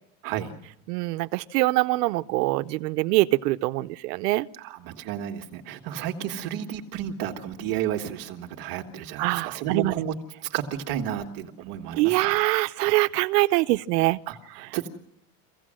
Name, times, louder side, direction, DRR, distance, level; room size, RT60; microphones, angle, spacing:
voice 1, 0.2-0.5 4.6-10.1 10.5-12.4 14.3-14.9, right 10 dB, 45° right, 3 dB, 1.6 m, -32 dB
voice 2, 0.9-4.5 9.2-9.9 11.9-14.2, right 20 dB, 85° right, 10 dB, 0.8 m, -23 dB
25.0 x 16.5 x 7.6 m, 0.82 s
supercardioid pair, 165°, 47 cm